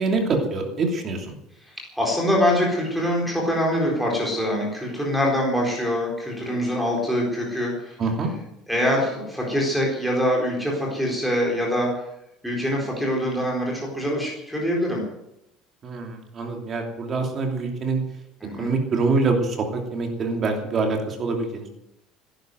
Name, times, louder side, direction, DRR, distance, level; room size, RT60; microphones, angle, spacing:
voice 1, 0.0-1.3 8.0-8.3 15.8-18.0 18.6-21.7, right 3 dB, 30° right, 3 dB, 2.8 m, -25 dB
voice 2, 1.7-8.0 8.7-11.9 12.4-15.0 18.4-18.7, equal, ahead, -2 dB, 4.1 m, -24 dB
17.0 x 10.5 x 7.8 m, 0.82 s
cardioid pair, 170°, 0 cm